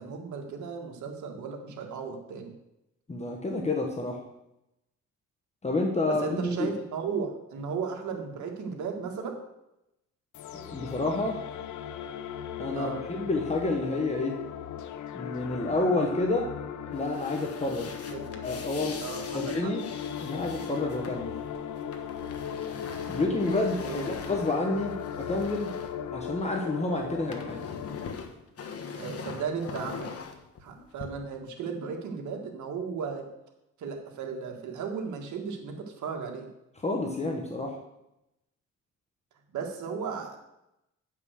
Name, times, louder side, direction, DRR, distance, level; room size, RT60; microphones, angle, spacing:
voice 1, 0.0-2.5 6.1-9.4 12.7-13.0 18.1-18.4 19.0-19.7 23.8-24.4 29.0-30.1 30.6-33.3 33.8-36.5 39.5-40.4, right 5 dB, 75° right, 3 dB, 1.9 m, -35 dB
voice 2, 3.1-4.2 5.6-6.7 10.5-11.4 12.6-12.9 13.2-14.4 15.1-16.5 16.8-17.9 18.4-19.0 19.3-19.8 20.2-21.3 23.1-25.7 26.1-27.6 36.8-37.8, left 2 dB, 20° left, 1 dB, 1.3 m, -29 dB
sound 1, 10.3-28.1, left 8 dB, 75° left, 0.8 m, -37 dB
sound 2, 16.9-26.7 27.0-31.1, left 5 dB, 50° left, 1.3 m, -43 dB
9.2 x 5.8 x 6.4 m, 0.87 s
cardioid pair, 90°, 30 cm